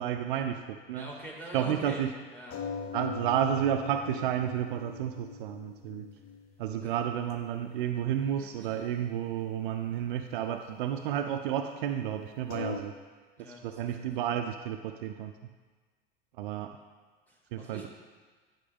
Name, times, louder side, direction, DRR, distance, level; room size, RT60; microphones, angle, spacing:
voice 1, 0.0-1.1 1.5-2.1 2.9-6.1 6.6-12.9 13.6-15.3 16.4-16.8 17.5-17.9, right 10 dB, 60° right, 7 dB, 0.5 m, -31 dB
voice 2, 0.9-2.0 2.3-2.6 6.8-6.9 8.6-8.8 13.4-14.3 17.3-17.9, equal, 5° left, -2 dB, 2.3 m, -45 dB
sound 1, 2.5-6.7 7.0-7.6 7.9-8.2 8.7-8.8 12.5-12.8, left 6 dB, 30° left, 0.8 m, -40 dB
11.0 x 5.8 x 3.6 m, 1.4 s
figure-of-eight pair, 75°, 29 cm